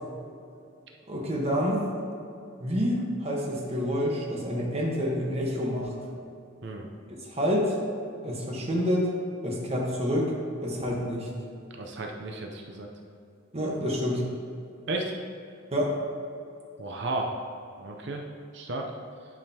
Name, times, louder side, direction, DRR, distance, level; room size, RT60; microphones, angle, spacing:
voice 1, 1.1-1.9 2.6-5.9 7.3-7.7 8.2-9.1 9.4-10.3 10.6-11.3 13.5-14.2 15.7-15.9, equal, 30° right, -2 dB, 1.1 m, -28 dB
voice 2, 11.8-12.9 14.9-15.1 16.8-17.4 17.8-18.2 18.5-18.8, right 2 dB, 60° right, 1 dB, 0.6 m, -33 dB
10.5 x 4.9 x 2.8 m, 2.6 s
head